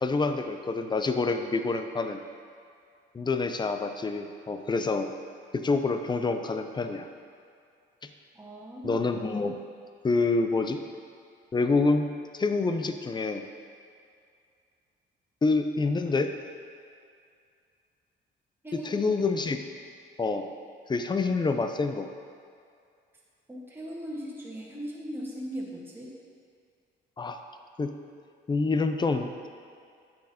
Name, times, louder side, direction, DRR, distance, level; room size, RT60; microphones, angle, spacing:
voice 1, 0.0-2.2 3.1-5.1 5.5-7.1 8.0-8.1 8.8-9.6 10.0-10.8 11.5-13.4 15.4-16.3 18.7-19.6 20.2-20.5 20.9-22.1 27.2-27.4 27.8-27.9 28.5-29.5, left 3 dB, 20° left, 7 dB, 0.5 m, -27 dB
voice 2, 8.3-9.0 18.6-19.1 23.5-26.1, equal, 10° right, -5 dB, 1.5 m, -38 dB
9.5 x 6.5 x 2.9 m, 2.4 s
cardioid pair, 90°, 20 cm